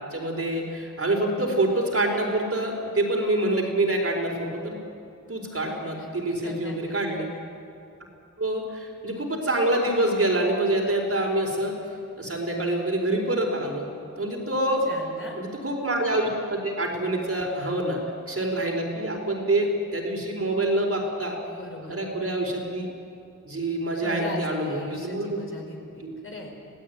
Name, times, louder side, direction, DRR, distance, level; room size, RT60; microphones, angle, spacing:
voice 1, 0.1-4.8 5.3-7.3 8.4-11.8 12.2-13.9 14.2-14.9 15.4-21.4 21.9-22.9 23.4-25.4 26.0-26.1, right 1 dB, 45° right, 1 dB, 4.6 m, -26 dB
voice 2, 6.4-7.0 14.8-15.4 21.5-22.0 24.0-26.5, left 2 dB, 40° left, 1 dB, 4.9 m, -39 dB
27.0 x 17.5 x 9.5 m, 2.5 s
wide cardioid pair, 115°, 33 cm